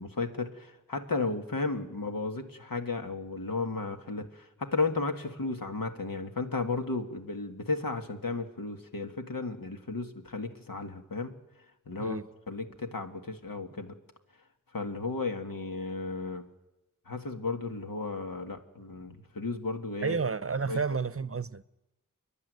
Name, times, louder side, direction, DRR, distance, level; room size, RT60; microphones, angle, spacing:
voice 1, 0.0-11.3 11.9-12.2 12.5-13.9 14.7-16.4 17.1-20.2 20.7-20.8, left 3 dB, 85° left, 1.9 m, -34 dB
voice 2, 20.0-21.6, right 5 dB, 45° right, 0.7 m, -31 dB
29.0 x 11.0 x 9.5 m
wide cardioid pair, 60°, 33 cm